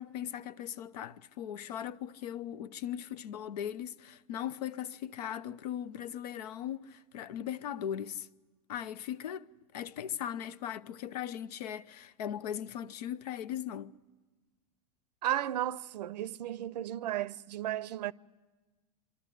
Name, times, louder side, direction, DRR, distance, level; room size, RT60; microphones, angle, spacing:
voice 1, 0.0-8.3 8.7-13.9, left 10 dB, 75° left, 0.8 m, -39 dB
voice 2, 15.2-18.1, right 12 dB, 85° right, 0.6 m, -34 dB
24.5 x 13.0 x 10.0 m
hypercardioid pair, 120°, 21 cm